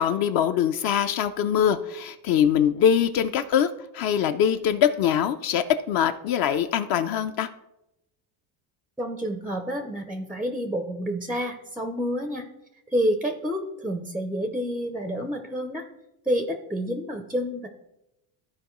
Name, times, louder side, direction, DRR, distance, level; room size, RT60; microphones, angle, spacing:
voice 1, 0.0-7.5, left 9 dB, 50° left, 9 dB, 0.5 m, -23 dB
voice 2, 9.0-12.5 12.9-15.8 16.3-17.7, equal, ahead, 6 dB, 0.4 m, -29 dB
14.0 x 4.7 x 3.0 m, 0.88 s
cardioid pair, 135°, 47 cm